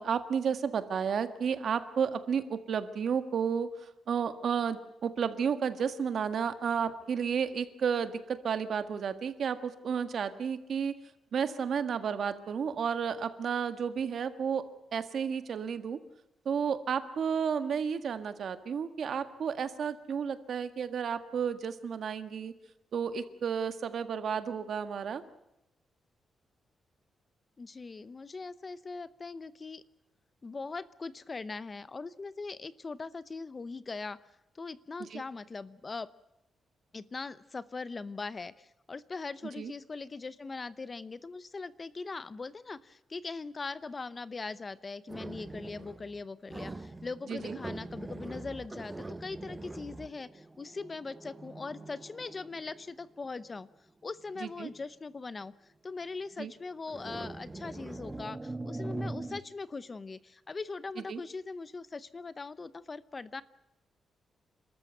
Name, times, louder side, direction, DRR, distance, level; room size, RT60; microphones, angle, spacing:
voice 1, 0.0-10.9 11.3-14.6 14.9-16.0 16.4-22.5 22.9-25.2 35.1-35.2 39.6-39.7 47.3-47.6 54.4-54.7 56.4-56.5 61.1-61.2, right 7 dB, 55° right, 10 dB, 1.7 m, -32 dB
voice 2, 27.6-29.8 30.4-34.2 34.5-36.1 36.9-53.7 54.0-55.5 55.8-63.4, left 4 dB, 25° left, 16 dB, 0.7 m, -41 dB
sound 1, 45.1-46.2 46.5-53.4 54.3-54.6 56.9-59.4, right 2 dB, 15° right, 0.9 m, -42 dB
29.0 x 13.5 x 9.1 m, 0.90 s
wide cardioid pair, 145°, 0 cm